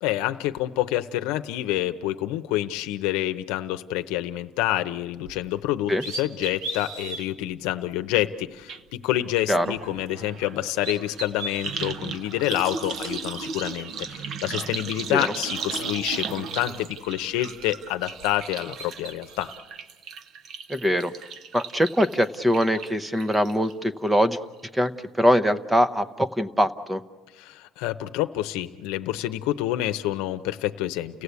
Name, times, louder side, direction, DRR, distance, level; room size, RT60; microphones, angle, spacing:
voice 1, 0.0-19.5 27.4-31.2, left 14 dB, 80° left, 10 dB, 0.8 m, -28 dB
sound 1, 5.2-5.5 5.9-7.3 7.9-8.0 9.8-10.5 10.7-11.9 12.7-13.9 15.1-15.2 15.6-17.3 17.6-18.4 18.7-19.6, right 2 dB, 65° right, 2.4 m, -38 dB
sound 2, 8.7-8.8 9.1-23.7 24.1-24.6 24.9-25.0, right 5 dB, 40° right, 0.8 m, -36 dB
voice 2, 20.7-21.1 21.5-24.4 24.7-27.0, equal, 5° right, 13 dB, 0.7 m, -22 dB
30.0 x 16.0 x 8.3 m, 1.3 s
cardioid pair, 160°, 0 cm